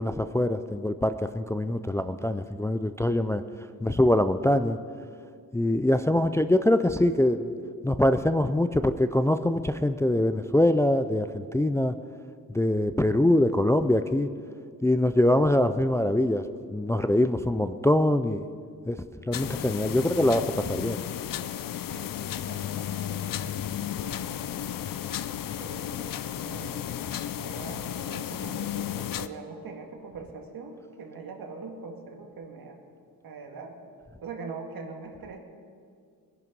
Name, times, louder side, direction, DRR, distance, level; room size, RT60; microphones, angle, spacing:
voice 1, 0.0-3.4 3.8-4.8 5.5-7.5 7.8-11.9 12.5-14.3 14.8-16.4 16.7-18.4 18.9-19.0 19.3-21.0, left 1 dB, 10° left, 10 dB, 0.3 m, -23 dB
sound 1, 19.3-29.3, left 10 dB, 65° left, 0.6 m, -33 dB
voice 2, 21.9-24.7 25.6-32.8 33.2-33.8 34.2-35.4, right 4 dB, 75° right, 3 dB, 2.1 m, -43 dB
21.5 x 11.0 x 5.3 m, 2.2 s
wide cardioid pair, 150°, 35 cm